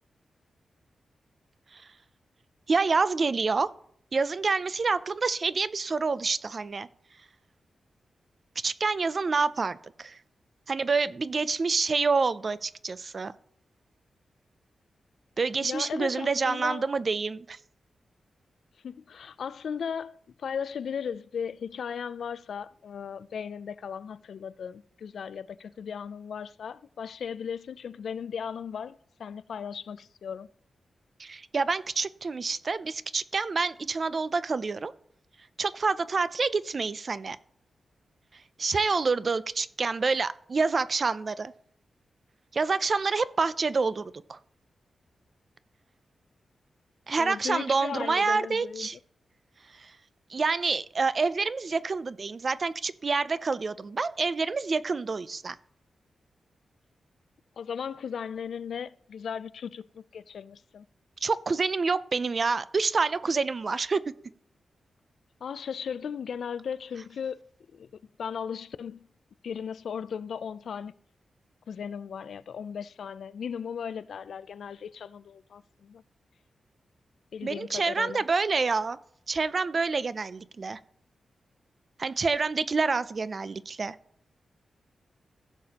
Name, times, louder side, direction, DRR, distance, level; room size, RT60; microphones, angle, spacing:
voice 1, 2.7-3.7 4.1-6.9 8.6-10.2 10.7-13.3 15.4-17.6 31.2-34.9 35.6-37.4 38.6-41.5 42.5-44.4 47.1-49.0 49.7-49.9 50.3-55.6 61.2-64.0 77.4-79.0 79.3-80.8 82.0-84.0, right 4 dB, 40° right, 0.4 m, -27 dB
voice 2, 15.6-16.9 18.8-30.5 47.2-48.9 57.6-60.9 65.4-67.4 67.7-67.9 68.2-69.1 69.4-70.9 71.7-76.0 77.3-78.2, left 7 dB, 75° left, 0.3 m, -36 dB
15.5 x 6.7 x 2.9 m
wide cardioid pair, 145°, 0 cm